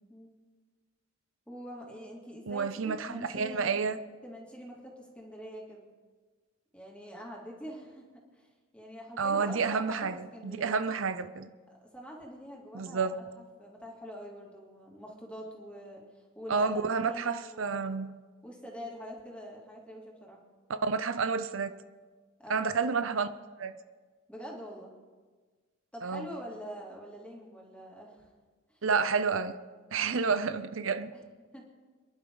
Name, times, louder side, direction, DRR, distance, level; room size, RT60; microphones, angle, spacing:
voice 1, 1.5-3.9 4.2-5.9 6.7-8.0 8.3-10.8 11.8-18.0 18.4-20.4 22.4-22.7 24.3-24.9 25.9-28.3 28.7-28.8 31.1-31.2 31.5-31.6, equal, 5° left, 2.9 m, -45 dB
voice 2, 2.5-4.0 9.2-11.5 12.7-13.2 16.5-18.1 20.8-21.7 22.5-23.3 23.6-23.8 26.0-26.3 28.8-29.6 29.9-31.1, right 5 dB, 85° right, 0.7 m, -30 dB
27.5 x 11.0 x 4.0 m
head